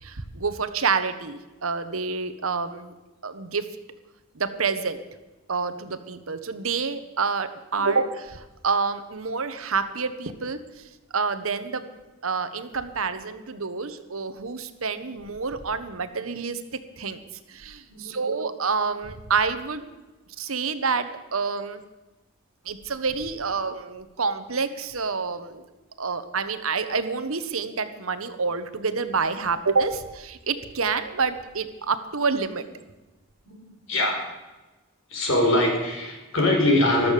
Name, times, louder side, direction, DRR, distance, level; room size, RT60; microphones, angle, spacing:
voice 1, 0.0-2.9 3.2-3.7 4.3-5.0 5.5-11.9 12.2-16.6 17.0-17.2 17.5-19.9 20.4-21.8 22.6-25.6 26.0-32.6, right 5 dB, 80° right, 10 dB, 1.2 m, -28 dB
voice 2, 33.5-34.2 35.1-37.1, left 1 dB, 65° left, 1 dB, 4.8 m, -23 dB
14.0 x 12.5 x 6.8 m, 1.1 s
head